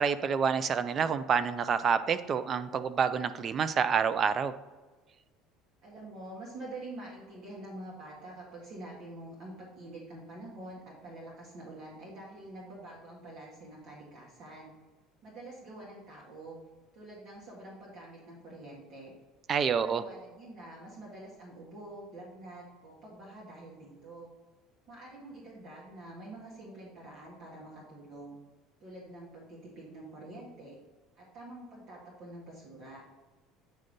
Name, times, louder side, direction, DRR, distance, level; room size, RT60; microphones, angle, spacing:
voice 1, 0.0-4.5 19.5-20.0, right 6 dB, 40° right, 13 dB, 0.5 m, -28 dB
voice 2, 5.8-14.7 15.2-16.6 16.9-19.1 19.8-24.3 24.9-28.4 28.8-30.8 31.2-33.0, right 1 dB, 60° right, -4 dB, 1.7 m, -46 dB
8.8 x 3.7 x 4.0 m, 1.3 s
supercardioid pair, 85°, 0 cm